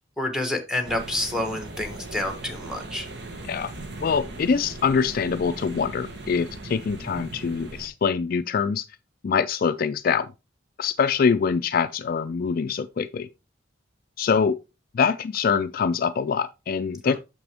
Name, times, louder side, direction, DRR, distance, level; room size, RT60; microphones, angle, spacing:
voice 1, 0.2-3.1, left 1 dB, 5° right, 1.2 m, -28 dB
sound 1, 0.8-7.9, right 2 dB, 60° right, 1.3 m, -38 dB
voice 2, 4.0-8.9 9.2-10.3 10.8-13.3 14.2-14.6 14.9-17.2, left 6 dB, 50° left, 0.4 m, -24 dB
6.8 x 6.0 x 3.4 m
head